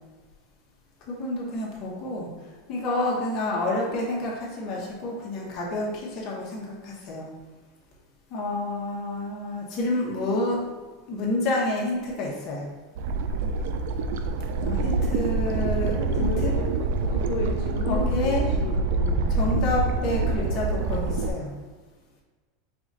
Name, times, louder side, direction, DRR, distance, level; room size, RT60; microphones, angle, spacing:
voice 1, 1.1-2.3 2.7-7.3 8.3-10.6 11.1-12.7 14.6-16.6 17.9-18.5 19.3-21.5, left 2 dB, 40° left, -3 dB, 1.1 m, -29 dB
sound 1, 13.0-21.3, right 3 dB, 65° right, 0.3 m, -26 dB
voice 2, 16.1-19.6, left 5 dB, 70° left, -2 dB, 0.6 m, -34 dB
4.9 x 2.5 x 3.9 m, 1.4 s
supercardioid pair, 150°, 0 cm